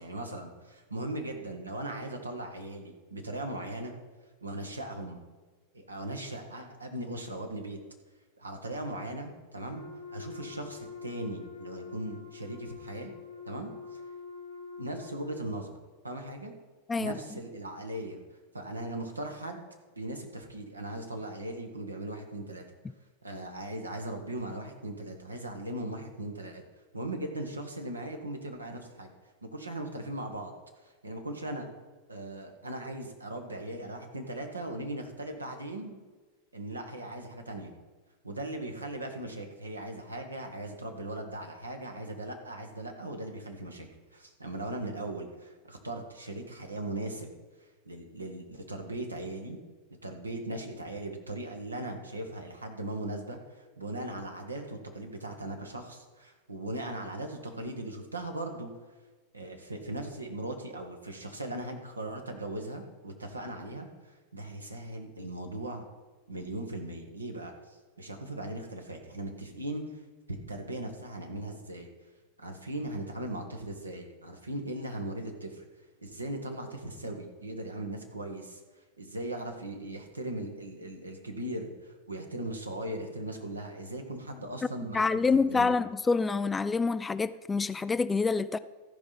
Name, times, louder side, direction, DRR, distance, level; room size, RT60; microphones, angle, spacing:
voice 1, 0.0-4.0 4.4-5.2 5.7-7.8 8.4-9.8 10.1-13.1 13.5-14.0 14.8-15.7 16.0-16.5 17.0-18.2 18.5-19.6 19.9-22.6 23.2-26.6 26.9-29.1 29.4-30.5 30.8-31.7 32.1-36.0 36.5-37.7 38.2-43.9 44.1-47.3 47.8-49.6 50.0-58.7 59.3-65.8 66.3-70.0 70.3-71.9 72.4-75.6 76.0-78.6 79.0-85.2 85.5-85.8, right 1 dB, 80° right, 1.4 m, -38 dB
Wind instrument woodwind instrument, 9.7-15.5, left 5 dB, 75° left, 1.3 m, -45 dB
voice 2, 84.9-88.6, left 4 dB, 15° left, 0.3 m, -27 dB
14.0 x 5.3 x 5.7 m
figure-of-eight pair, 90°, 0 cm